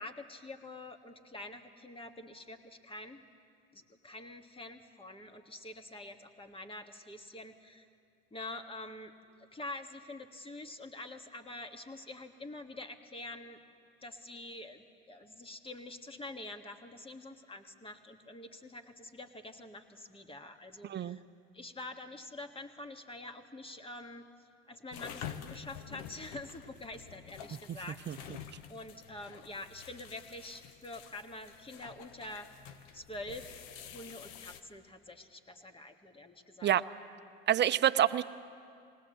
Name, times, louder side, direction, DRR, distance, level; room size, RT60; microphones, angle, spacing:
voice 1, 0.0-3.2 3.7-7.9 8.3-9.1 9.5-13.6 14.0-21.2 21.5-24.2 24.7-28.0 28.3-28.4 28.7-32.5 32.9-33.6 33.9-36.7, left 2 dB, 15° left, 6 dB, 1.6 m, -46 dB
sound 1, 24.9-34.6, left 8 dB, 75° left, 1.0 m, -48 dB
voice 2, 37.5-38.2, right 11 dB, 35° right, 13 dB, 0.6 m, -27 dB
20.0 x 19.0 x 7.7 m, 2.3 s
hypercardioid pair, 80°, 31 cm